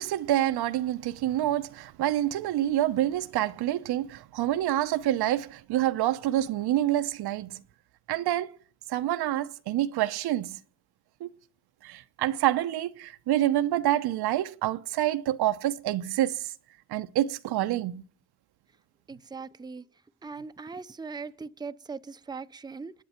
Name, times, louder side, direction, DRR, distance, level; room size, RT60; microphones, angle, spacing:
voice 1, 0.0-7.6 8.1-8.5 8.9-10.6 11.2-11.3 11.8-16.5 16.9-18.0, right 13 dB, 75° right, 0.9 m, -27 dB
voice 2, 19.1-19.8 20.2-22.9, right 4 dB, 10° right, 0.7 m, -40 dB
28.5 x 9.8 x 4.4 m
cardioid pair, 95°, 39 cm